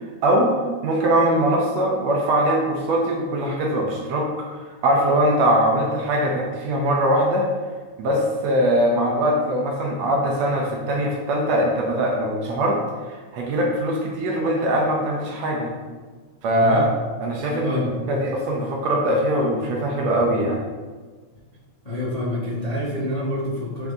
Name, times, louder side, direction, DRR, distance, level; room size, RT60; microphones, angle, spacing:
voice 1, 0.2-0.5 0.8-4.3 4.8-7.5 8.0-12.8 13.1-15.7 16.4-16.8 17.2-17.8 18.1-20.6, right 1 dB, 70° right, -1 dB, 1.9 m, -21 dB
voice 2, 16.5-16.9 17.6-18.0 21.8-23.9, left 1 dB, 30° left, -9 dB, 0.6 m, -27 dB
8.5 x 3.9 x 3.5 m, 1.4 s
omnidirectional pair, 3.5 m